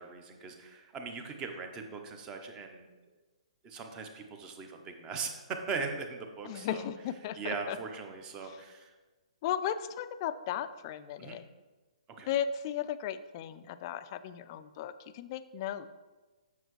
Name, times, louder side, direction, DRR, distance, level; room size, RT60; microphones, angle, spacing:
voice 1, 0.0-2.9 3.6-6.9 7.4-8.9 11.2-11.4 12.2-12.3, right 5 dB, 20° right, 5 dB, 0.8 m, -40 dB
voice 2, 6.4-7.8 9.4-11.5 12.3-15.9, left 10 dB, 35° left, 12 dB, 0.4 m, -36 dB
7.8 x 6.7 x 3.1 m, 1.3 s
hypercardioid pair, 150°, 4 cm